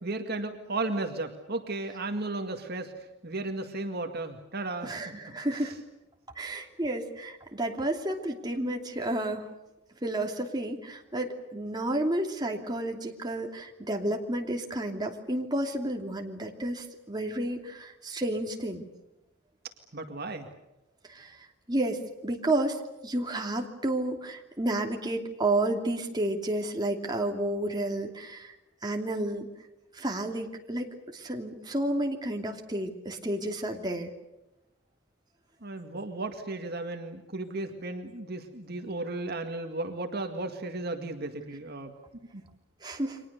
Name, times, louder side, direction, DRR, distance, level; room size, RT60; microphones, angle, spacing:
voice 1, 0.0-2.9 3.2-5.0 5.6-5.7 19.9-20.5 35.6-41.9 42.3-42.4, right 2 dB, 50° right, 5 dB, 2.1 m, -34 dB
voice 2, 4.8-5.8 6.4-9.5 10.0-18.9 21.1-21.4 21.7-28.5 28.8-29.5 29.9-34.1 42.8-43.2, right 1 dB, 20° right, 2 dB, 2.8 m, -31 dB
30.0 x 24.0 x 6.8 m, 0.95 s
head